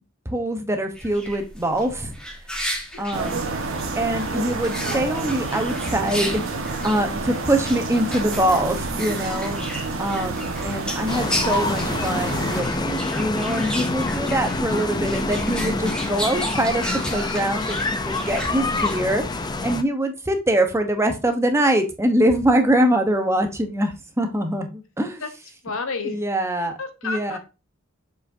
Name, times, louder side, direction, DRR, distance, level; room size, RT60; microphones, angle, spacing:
voice 1, 0.2-2.2 3.0-3.5 4.0-9.6 10.0-25.2 26.0-26.8 27.0-27.4, right 1 dB, 15° right, 6 dB, 0.9 m, -24 dB
sound 1, 1.0-19.7, equal, 5° left, 1.4 m, -34 dB
sound 2, 3.1-12.6, right 3 dB, 75° right, 1.4 m, -29 dB
sound 3, 11.1-19.8, left 2 dB, 20° left, 0.6 m, -26 dB
voice 2, 25.6-26.2 26.8-27.4, left 4 dB, 80° left, 8 dB, 1.1 m, -30 dB
7.0 x 5.2 x 2.7 m, 0.29 s
head